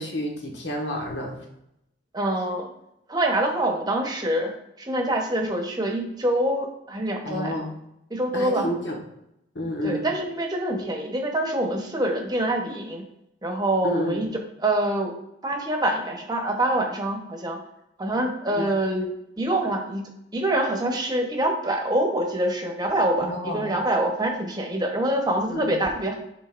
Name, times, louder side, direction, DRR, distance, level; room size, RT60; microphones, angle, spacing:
voice 1, 0.0-1.4 7.2-7.8 8.3-8.9 9.5-10.0 13.8-14.2 18.5-18.7 23.2-23.7 25.5-25.7, equal, 75° left, 0 dB, 1.4 m, -30 dB
voice 2, 2.1-2.7 3.1-4.5 4.8-7.6 8.1-8.6 9.8-13.0 13.4-14.3 14.6-15.1 15.4-17.6 18.0-26.2, right 1 dB, 20° right, 2 dB, 1.0 m, -25 dB
10.5 x 3.8 x 2.5 m, 0.82 s
head